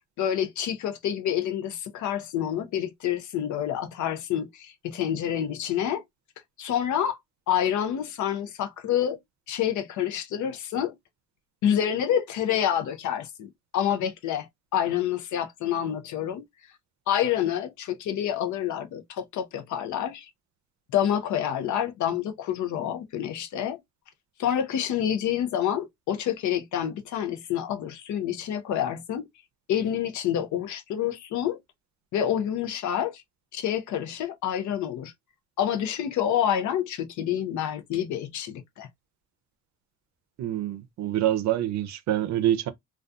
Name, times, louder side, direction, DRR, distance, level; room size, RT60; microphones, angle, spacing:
voice 1, 0.2-6.0 6.6-7.2 7.5-9.2 9.5-10.9 11.6-14.5 14.7-16.4 17.1-20.3 20.9-23.8 24.4-29.3 29.7-31.6 32.1-33.2 33.5-35.1 35.6-38.9, left 10 dB, 75° left, 0.6 m, -28 dB
voice 2, 40.4-42.7, right 12 dB, 65° right, 0.5 m, -26 dB
2.6 x 2.3 x 2.2 m
cardioid pair, 90°, 30 cm